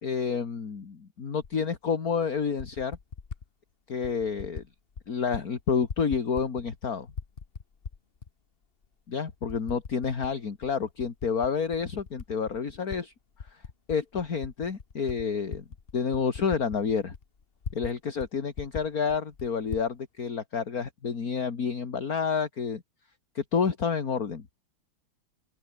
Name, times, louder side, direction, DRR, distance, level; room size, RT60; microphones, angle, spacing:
voice 1, 0.0-3.0 3.9-4.6 5.1-7.1 9.1-13.1 13.5-13.6 13.9-15.6 15.9-17.1 17.7-22.8 23.4-24.4, left 6 dB, 50° left, 2.5 m, -29 dB
Typing, 1.4-1.5 2.4-3.4 4.0-4.7 4.9-5.4 5.7-6.8 7.1-8.3 8.8-8.9 9.5-10.3 10.6-13.0 13.3-17.9 18.2-18.3 18.5-19.9, left 5 dB, 35° left, 1.3 m, -40 dB
open air
omnidirectional pair, 2.0 m